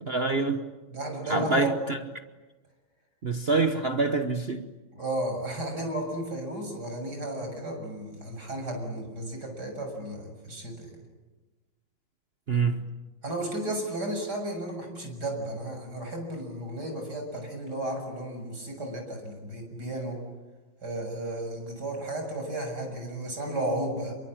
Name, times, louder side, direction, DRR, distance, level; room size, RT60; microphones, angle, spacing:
voice 1, 0.0-0.6 1.3-2.0 3.2-4.7 12.5-12.8, right 3 dB, 40° right, 1.1 m, -26 dB
voice 2, 0.9-1.8 4.9-10.9 13.2-20.2 20.8-24.1, right 1 dB, 55° right, 7.5 m, -33 dB
27.5 x 23.5 x 9.1 m
omnidirectional pair, 2.2 m